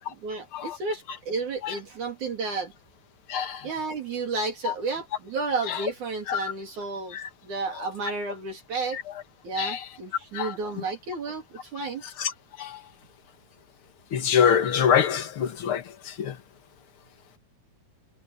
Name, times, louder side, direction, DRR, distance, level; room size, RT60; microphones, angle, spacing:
voice 1, 0.2-2.7 3.6-7.2 7.4-9.0 9.4-11.4 11.7-12.0, right 3 dB, 60° right, 4.8 m, -32 dB
voice 2, 3.3-3.7 4.7-4.8 5.7-5.8 6.3-6.4 7.1-7.2 9.6-9.8 10.3-10.5 12.2-12.3 12.6-12.8 14.1-16.4, left 8 dB, 45° left, 2.2 m, -25 dB
omnidirectional pair, 3.8 m